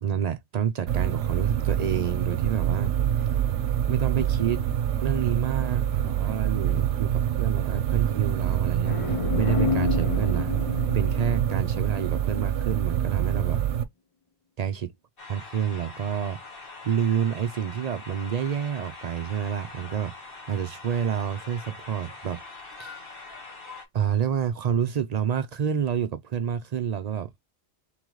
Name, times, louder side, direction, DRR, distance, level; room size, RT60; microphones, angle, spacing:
voice 1, 0.0-2.9 3.9-4.6 5.0-10.6 10.9-13.6 14.6-14.9 15.3-20.1 20.5-22.4 22.8-23.0 23.9-27.4, right 8 dB, 55° right, 0.4 m, -28 dB
sound 1, 0.9-13.8, right 10 dB, 75° right, 0.9 m, -26 dB
sound 2, 8.8-12.5, left 6 dB, 30° left, 0.8 m, -30 dB
sound 3, 15.2-23.8, left 3 dB, 50° left, 1.7 m, -43 dB
3.9 x 3.8 x 3.1 m
omnidirectional pair, 1.2 m